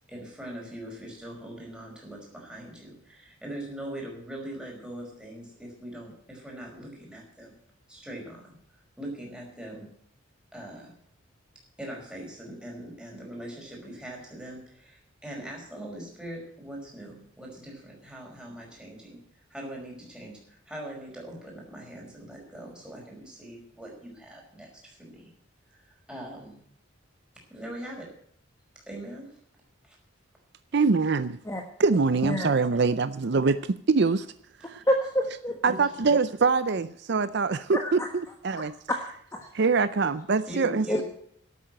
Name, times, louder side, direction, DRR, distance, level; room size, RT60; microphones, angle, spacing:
voice 1, 0.1-7.6 7.9-9.9 10.5-10.9 11.8-25.3 25.7-26.6 27.3-28.1 28.7-29.4 29.8-30.0 34.7-34.9 35.7-35.8 40.5-41.0, right 1 dB, 5° right, -2 dB, 5.1 m, -41 dB
voice 2, 30.7-31.4 31.8-34.3 34.6-34.8 35.6-38.0 38.4-38.7 39.5-40.9, right 4 dB, 55° right, 14 dB, 0.5 m, -24 dB
voice 3, 32.2-32.6 34.9-35.6 37.7-38.1 39.3-39.4 40.9-41.0, equal, 15° left, 2 dB, 1.3 m, -27 dB
12.5 x 8.7 x 9.1 m, 0.66 s
head